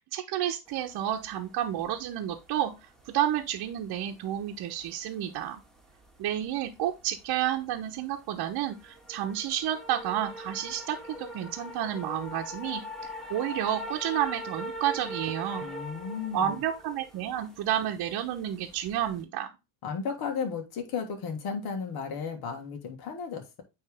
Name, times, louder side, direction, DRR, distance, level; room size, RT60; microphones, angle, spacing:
voice 1, 0.1-2.7 3.1-5.6 6.2-15.7 16.3-19.5, right 11 dB, 55° right, 1.0 m, -30 dB
sound 1, 0.7-19.2, left 1 dB, ahead, 1.6 m, -42 dB
voice 2, 15.6-16.5 19.8-23.6, left 6 dB, 55° left, 1.7 m, -34 dB
9.1 x 3.3 x 3.5 m
hypercardioid pair, 75°, 44 cm